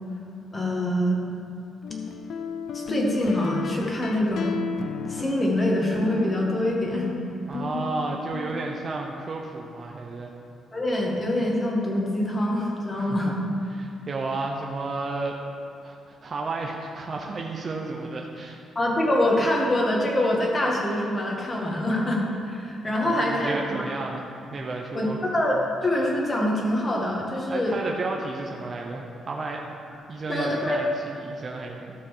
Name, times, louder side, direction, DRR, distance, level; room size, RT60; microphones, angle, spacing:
voice 1, 0.5-1.2 2.7-4.6 5.1-7.1 10.7-13.3 18.8-23.6 24.9-27.7 30.3-30.8, left 1 dB, 20° left, -2 dB, 1.8 m, -25 dB
sound 1, 1.8-8.9, left 6 dB, 65° left, 0.5 m, -34 dB
voice 2, 7.5-10.3 13.0-13.3 13.7-15.4 15.8-18.6 23.0-25.2 27.5-29.7 30.1-31.9, right 3 dB, 35° right, 0 dB, 0.8 m, -32 dB
13.0 x 4.4 x 7.4 m, 2.6 s
cardioid pair, 130°, 0 cm